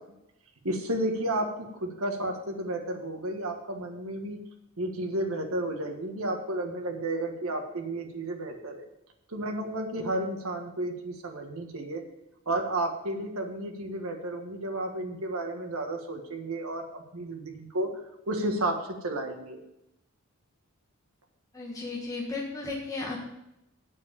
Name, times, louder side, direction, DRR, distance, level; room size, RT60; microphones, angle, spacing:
voice 1, 0.6-4.4 4.8-8.8 9.3-12.0 12.4-17.9 18.3-19.6, right 1 dB, 75° right, 3 dB, 1.6 m, -32 dB
voice 2, 21.5-23.4, left 3 dB, 15° left, -3 dB, 1.5 m, -35 dB
8.2 x 7.0 x 6.9 m, 0.86 s
head